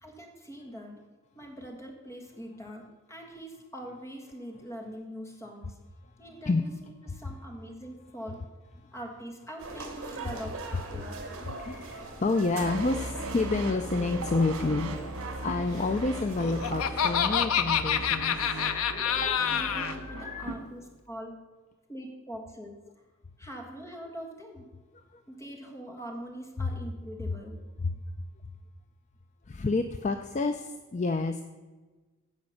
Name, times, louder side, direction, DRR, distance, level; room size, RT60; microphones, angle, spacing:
voice 1, 0.0-1.0 1.3-2.8 3.1-5.8 6.2-8.4 8.9-11.1 19.1-21.4 21.9-22.7 23.4-24.6 25.3-27.6, equal, 10° left, 1 dB, 1.6 m, -43 dB
sound 1, 9.6-17.1, right 2 dB, 75° right, 1.9 m, -41 dB
voice 2, 11.5-19.1 20.0-20.6 24.9-25.2 26.6-26.7 27.8-28.0 29.5-31.4, left 3 dB, 30° left, 8 dB, 0.4 m, -30 dB
sound 2, 12.6-20.6, right 2 dB, 90° right, 1.6 m, -38 dB
Laughter, 16.2-19.9, left 8 dB, 75° left, 0.6 m, -27 dB
15.5 x 5.2 x 6.5 m, 1.3 s
head